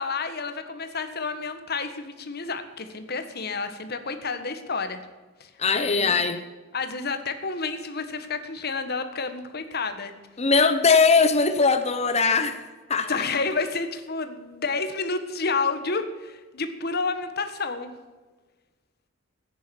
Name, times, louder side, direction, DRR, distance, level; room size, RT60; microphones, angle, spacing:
voice 1, 0.0-5.0 5.4-6.2 6.7-10.1 13.1-17.9, left 4 dB, 50° left, 8 dB, 1.5 m, -30 dB
voice 2, 5.6-6.4 10.4-12.6 12.9-13.1, left 4 dB, 30° left, 8 dB, 0.9 m, -20 dB
14.5 x 10.0 x 7.1 m, 1.3 s
head